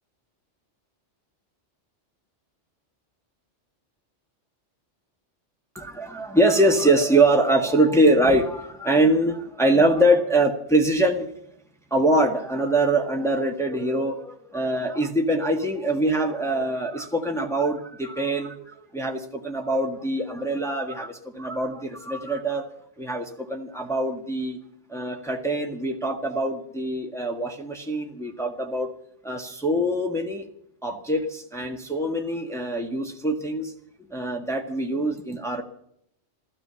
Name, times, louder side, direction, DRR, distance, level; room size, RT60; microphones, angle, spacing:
voice 1, 5.8-11.3 11.9-22.7 23.0-24.6 24.9-28.9 29.2-30.5 30.8-33.7 34.1-35.6, right 1 dB, ahead, 2 dB, 1.7 m, -23 dB
14.5 x 13.5 x 7.0 m, 0.71 s
omnidirectional pair, 1.2 m